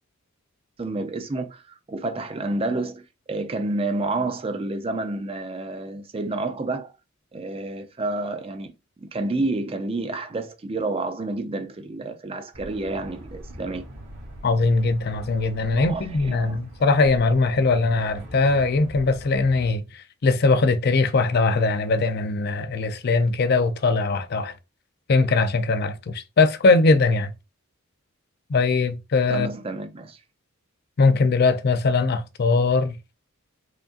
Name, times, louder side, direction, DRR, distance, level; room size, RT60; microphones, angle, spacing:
voice 1, 0.8-6.9 7.3-13.9 15.8-16.6 29.3-30.2, right 2 dB, 25° right, 0.4 m, -29 dB
sound 1, 12.5-19.7, right 1 dB, 50° right, 1.2 m, -42 dB
voice 2, 14.4-24.5 25.1-27.3 28.5-29.5 31.0-33.0, left 3 dB, 50° left, 0.4 m, -21 dB
4.8 x 2.6 x 2.4 m
head